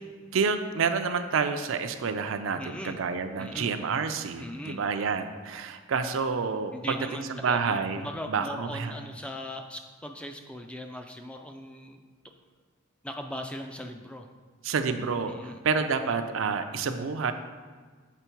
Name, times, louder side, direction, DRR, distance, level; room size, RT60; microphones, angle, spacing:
voice 1, 0.3-8.0 8.3-8.9 14.6-17.3, right 5 dB, 65° right, 8 dB, 0.5 m, -29 dB
voice 2, 2.6-3.0 3.4-3.7 4.4-4.8 6.7-12.0 13.0-14.3 15.3-15.6, left 1 dB, 5° left, 4 dB, 0.3 m, -39 dB
6.9 x 4.4 x 4.5 m, 1.5 s
head